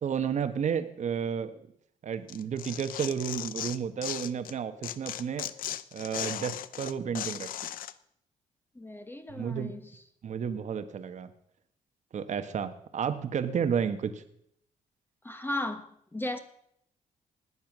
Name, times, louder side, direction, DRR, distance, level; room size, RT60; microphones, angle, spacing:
voice 1, 0.0-1.5 2.0-5.5 5.9-7.5 9.3-9.7 10.2-11.3 12.1-14.2, right 7 dB, 55° right, 1.2 m, -32 dB
Tearing, 2.3-4.5 4.8-7.9, left 12 dB, 80° left, 0.6 m, -37 dB
voice 2, 8.7-9.8 15.2-16.4, left 1 dB, 15° left, 1.4 m, -35 dB
19.5 x 7.3 x 6.1 m
cardioid pair, 85°, 14 cm